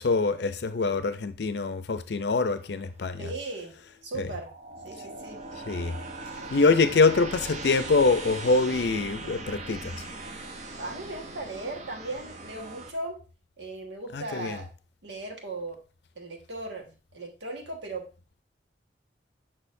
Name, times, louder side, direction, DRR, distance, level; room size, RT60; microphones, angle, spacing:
voice 1, 0.0-3.3 4.1-4.3 5.7-6.0 6.5-10.0 14.1-14.6, left 3 dB, 65° left, 0.5 m, -24 dB
sound 1, 2.4-3.2 4.0-4.1 4.5-12.9, right 2 dB, 40° right, 0.7 m, -40 dB
voice 2, 3.2-3.7 4.0-4.5 4.8-5.4 10.8-13.2 13.6-14.7 15.0-15.8 16.1-18.1, right 2 dB, 80° right, 1.5 m, -37 dB
6.4 x 6.1 x 2.6 m
head